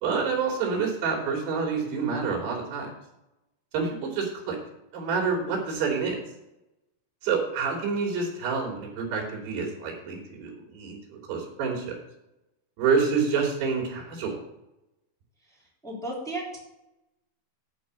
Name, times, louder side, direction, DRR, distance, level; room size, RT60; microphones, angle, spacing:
voice 1, 0.0-2.9 3.7-4.6 4.9-6.2 7.2-12.0 12.8-14.4, right 5 dB, 75° right, -2 dB, 4.9 m, -28 dB
voice 2, 15.8-16.6, right 1 dB, ahead, -5 dB, 2.8 m, -33 dB
11.5 x 4.6 x 8.2 m, 0.90 s
omnidirectional pair, 4.8 m